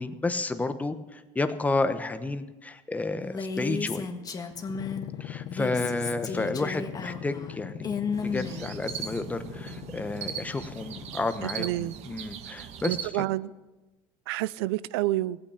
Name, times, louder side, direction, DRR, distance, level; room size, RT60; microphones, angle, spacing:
voice 1, 0.0-4.1 5.2-7.9 8.2-13.3, left 3 dB, 10° left, 9 dB, 1.0 m, -31 dB
Female speech woman speaking, 3.2-5.1 5.4-9.2, left 5 dB, 30° left, 1.5 m, -34 dB
sound 1, 4.5-11.9, left 12 dB, 55° left, 1.1 m, -42 dB
sound 2, 8.1-13.1, right 8 dB, 55° right, 1.4 m, -39 dB
voice 2, 11.5-11.9 12.8-13.5 14.3-15.4, right 16 dB, 90° right, 20 dB, 0.5 m, -28 dB
16.5 x 9.0 x 8.3 m, 1.1 s
supercardioid pair, 115°, 13 cm